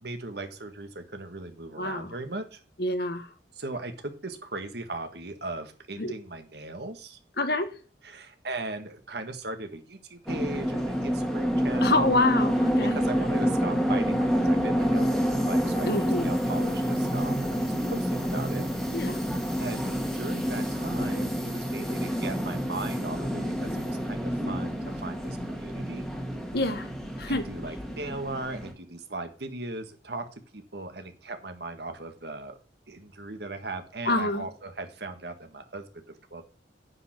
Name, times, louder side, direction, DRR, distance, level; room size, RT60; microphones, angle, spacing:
voice 1, 0.0-2.6 3.5-7.2 8.0-12.2 12.9-18.6 19.0-26.1 27.3-30.2 30.5-32.6 32.9-36.4, right 2 dB, 60° right, 1.6 m, -38 dB
voice 2, 1.8-2.1 2.8-3.3 6.0-6.1 7.4-7.7 11.8-13.0 15.8-16.3 18.9-19.2 26.5-26.9 27.2-27.4 34.0-34.5, left 2 dB, 60° left, 1.3 m, -26 dB
sound 1, 10.3-28.7, equal, ahead, 1.6 m, -28 dB
9.6 x 5.2 x 6.0 m
head